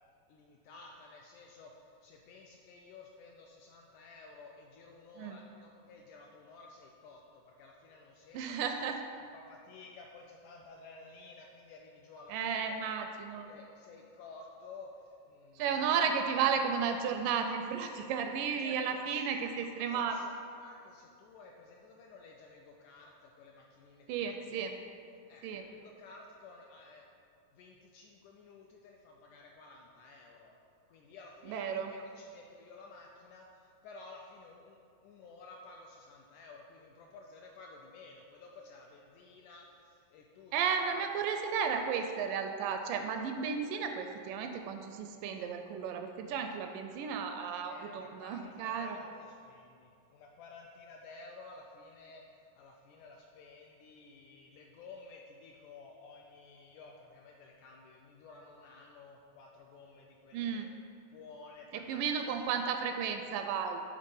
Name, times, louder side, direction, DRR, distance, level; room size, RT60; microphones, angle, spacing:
voice 1, 0.3-8.7 9.3-12.9 13.5-15.7 17.9-18.0 18.6-19.3 19.9-20.3 20.6-24.8 25.3-27.1 27.5-30.6 30.9-40.5 40.9-41.5 47.6-60.6 61.1-62.3, left 3 dB, 85° left, 0 dB, 1.8 m, -53 dB
voice 2, 8.3-9.0 12.3-13.5 15.6-20.2 24.1-24.8 25.4-25.6 31.5-32.0 40.5-49.0 60.3-60.7 61.7-63.8, right 6 dB, 80° right, 6 dB, 2.0 m, -33 dB
9.9 x 3.9 x 5.5 m, 2.4 s
omnidirectional pair, 4.0 m